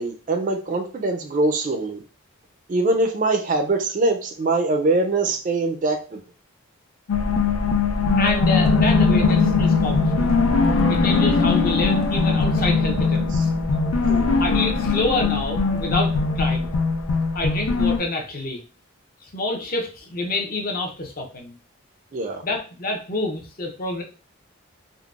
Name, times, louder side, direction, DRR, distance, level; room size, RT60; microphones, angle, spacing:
voice 1, 0.0-2.0 2.7-6.2 13.3-13.4 14.1-14.4 22.1-22.4, right 2 dB, 40° right, 5 dB, 0.3 m, -23 dB
sound 1, 7.1-18.0, left 4 dB, 90° left, 0.5 m, -20 dB
voice 2, 8.2-10.3 10.9-13.5 14.4-16.7 17.3-18.6 19.3-21.5 22.4-24.0, left 2 dB, 40° left, 1 dB, 0.5 m, -27 dB
3.7 x 2.0 x 2.3 m, 0.36 s
head